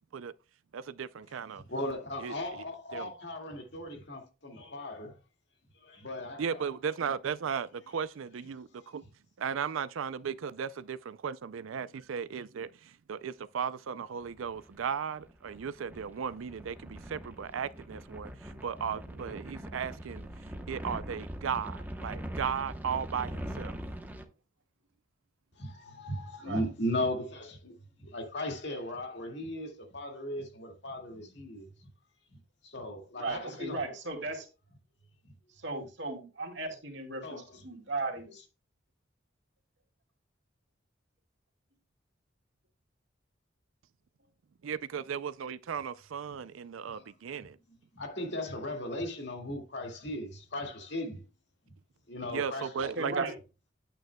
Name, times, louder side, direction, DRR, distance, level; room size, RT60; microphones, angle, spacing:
voice 1, 0.7-1.6 2.2-2.6 2.9-3.1 6.4-9.0 9.4-23.8 44.6-47.6 52.3-53.3, right 7 dB, 90° right, 0.4 m, -36 dB
voice 2, 1.7-5.1 5.8-6.6 25.6-31.9 32.3-32.4 32.6-33.9 35.2-35.3 37.2-37.7 46.9-47.0 47.4-47.5 47.9-51.2 52.1-52.7, left 1 dB, 60° left, 2.1 m, -37 dB
sound 1, 14.2-24.2, equal, 10° right, 0.9 m, -42 dB
voice 3, 33.2-34.5 35.6-38.3 53.0-53.3, right 2 dB, 65° right, 2.6 m, -36 dB
9.1 x 8.9 x 2.2 m
head